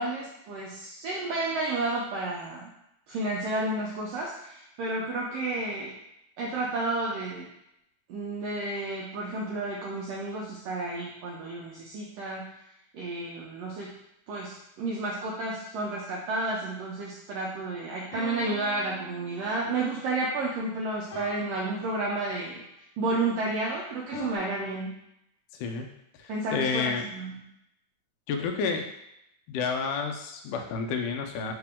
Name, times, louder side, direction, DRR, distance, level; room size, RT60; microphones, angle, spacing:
voice 1, 0.0-2.7 3.1-5.9 6.4-7.5 8.1-12.5 12.9-13.9 14.3-22.6 23.0-25.0 26.3-27.4, right 2 dB, 90° right, -4 dB, 1.4 m, -31 dB
sound 1, 18.1-19.9 21.1-22.5 24.1-24.4, left 3 dB, 55° left, 1.4 m, -42 dB
voice 2, 25.5-25.9 26.2-27.1 28.3-28.8 29.5-31.5, left 5 dB, 90° left, 4 dB, 2.1 m, -30 dB
4.9 x 2.9 x 3.5 m, 0.81 s
omnidirectional pair, 3.6 m